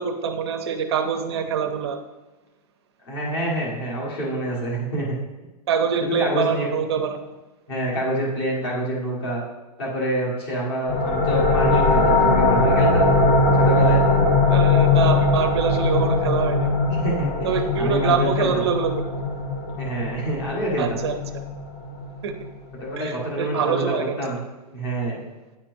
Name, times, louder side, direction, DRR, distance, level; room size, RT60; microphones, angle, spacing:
voice 1, 0.0-2.0 5.7-7.3 14.5-16.7 17.4-19.0 20.8-21.2 22.2-22.3 23.0-24.2, right 7 dB, 40° right, 7 dB, 0.6 m, -24 dB
voice 2, 3.0-5.1 6.2-6.7 6.9-7.0 7.7-9.4 9.8-13.0 13.6-14.0 17.0-17.5 17.8-18.6 19.8-21.0 22.8-24.4 24.7-25.2, right 1 dB, 40° left, -4 dB, 1.7 m, -27 dB
sound 1, 10.9-22.2, left 3 dB, 25° left, 0.9 m, -20 dB
9.5 x 4.3 x 2.6 m, 1.1 s
hypercardioid pair, 175°, 21 cm